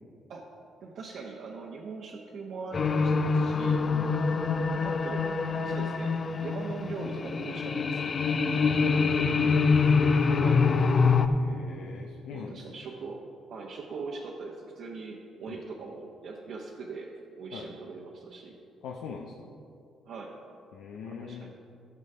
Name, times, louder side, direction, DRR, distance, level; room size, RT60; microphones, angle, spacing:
voice 1, 0.8-3.8 4.1-4.3 4.8-8.0 10.2-10.6 12.3-13.2 13.5-17.1 17.4-18.5 20.1-20.3 21.0-21.5, right 4 dB, 70° right, -2 dB, 1.0 m, -41 dB
sound 1, 2.7-11.3, left 4 dB, 45° left, 0.6 m, -25 dB
voice 2, 8.6-9.6 11.2-12.6 15.5-15.6 17.5-17.7 18.8-19.3 20.7-21.5, left 6 dB, 85° left, 0 dB, 0.7 m, -41 dB
12.5 x 6.4 x 5.5 m, 2.5 s
cardioid pair, 90°, 0 cm